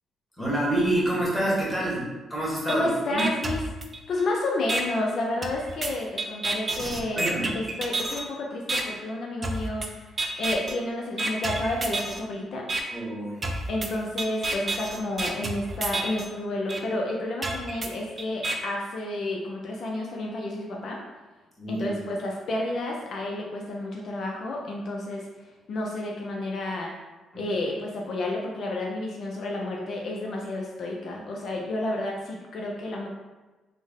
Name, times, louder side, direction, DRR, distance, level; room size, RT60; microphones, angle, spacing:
voice 1, 0.4-3.3 7.1-7.6 12.9-13.4 21.6-22.0 27.3-27.5, right 1 dB, 5° left, -7 dB, 1.4 m, -27 dB
voice 2, 2.7-3.6 4.1-10.0 10.4-12.7 13.7-21.0 21.7-25.3 25.7-26.9 27.4-33.1, left 2 dB, 60° left, -1 dB, 0.4 m, -30 dB
sound 1, 2.7-2.8 3.2-4.2 4.7-4.8 5.4-8.2 8.7-8.8 9.4-9.9 10.2-10.7 11.2-12.2 12.7-12.8 13.4-16.2 16.7-16.8 17.4-18.5, right 2 dB, 35° right, 0.4 m, -30 dB
3.4 x 2.1 x 3.6 m, 1.2 s
cardioid pair, 90°, 0 cm